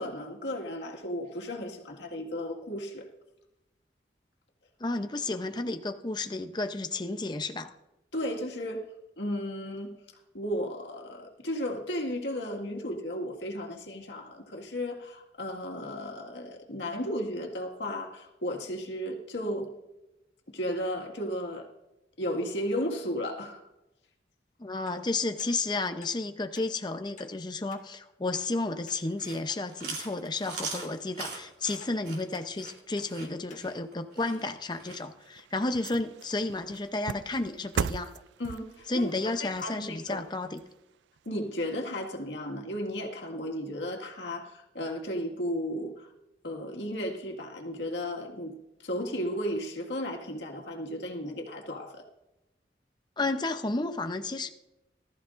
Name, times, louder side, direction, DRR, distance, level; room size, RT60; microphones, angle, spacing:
voice 1, 0.0-3.1 8.1-8.8 9.2-10.0 10.3-19.7 20.5-21.7 22.2-23.6 38.4-40.2 41.3-46.1 46.4-48.5 48.8-52.0, equal, 90° left, 1 dB, 1.9 m, -34 dB
voice 2, 4.8-7.7 24.6-38.1 38.9-40.6 53.2-54.5, left 2 dB, 25° left, 8 dB, 0.7 m, -32 dB
sound 1, 24.9-25.0 25.4-25.5 26.0-26.2 26.5-26.7 27.2-27.3 27.7-27.8 28.3-28.5 28.9-29.0 29.5-29.6 30.0-30.2 30.6-30.8 31.2-31.3 31.8-32.0 32.3-32.5 33.0-33.1 33.5-33.6 34.1-34.2, left 5 dB, 45° left, 2.0 m, -52 dB
Chewing mastication, 29.0-35.0, right 4 dB, 65° right, 3.4 m, -41 dB
sound 2, 34.8-41.3 41.7-41.8, right 6 dB, 85° right, 0.3 m, -39 dB
19.0 x 13.5 x 2.6 m, 0.94 s
head